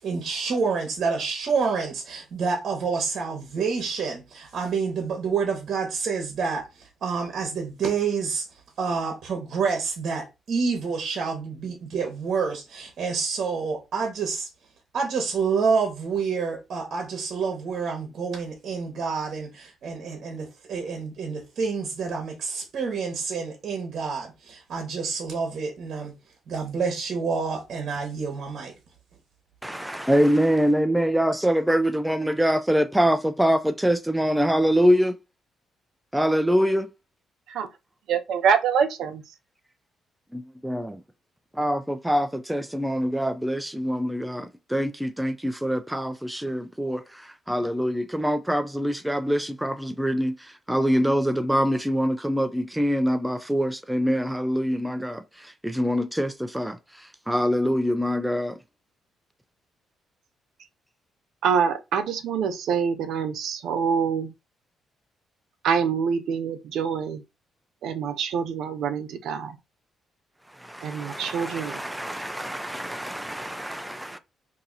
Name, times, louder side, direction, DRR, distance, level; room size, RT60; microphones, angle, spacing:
voice 1, 0.0-8.4 8.8-14.5 14.9-26.1 26.5-28.7, right 5 dB, 60° right, 1.0 m, -28 dB
voice 2, 29.6-35.2 36.1-36.9 40.3-40.9 41.5-58.6 70.6-74.2, equal, 5° right, 0.3 m, -24 dB
voice 3, 38.1-39.2 61.4-64.3 65.6-67.2 67.8-69.6 70.8-71.8, right 6 dB, 80° right, 0.4 m, -25 dB
2.7 x 2.7 x 3.9 m
cardioid pair, 90°, 0 cm